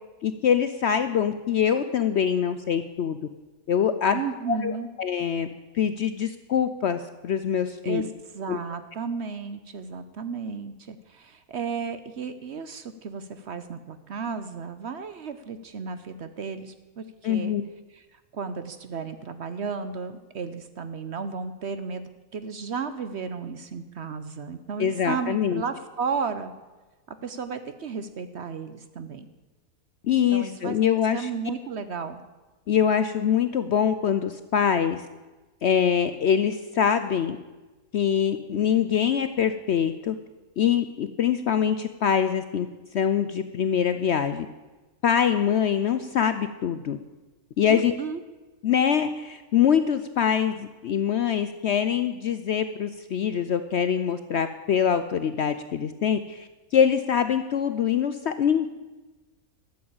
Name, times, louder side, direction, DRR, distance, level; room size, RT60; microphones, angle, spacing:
voice 1, 0.2-3.2 3.7-4.2 4.5-8.0 8.5-8.6 17.2-17.6 24.8-25.6 30.0-31.3 32.7-35.1 35.6-37.4 37.9-40.1 40.6-42.7 42.9-44.5 45.0-47.0 47.6-47.9 48.6-58.7, left 8 dB, 65° left, 10 dB, 0.7 m, -24 dB
voice 2, 4.1-4.9 7.8-8.1 8.3-17.5 17.9-26.5 27.1-29.3 30.3-30.8 31.1-32.2 47.7-48.2, right 5 dB, 55° right, 10 dB, 0.9 m, -34 dB
12.5 x 7.9 x 8.5 m, 1.2 s
omnidirectional pair, 1.6 m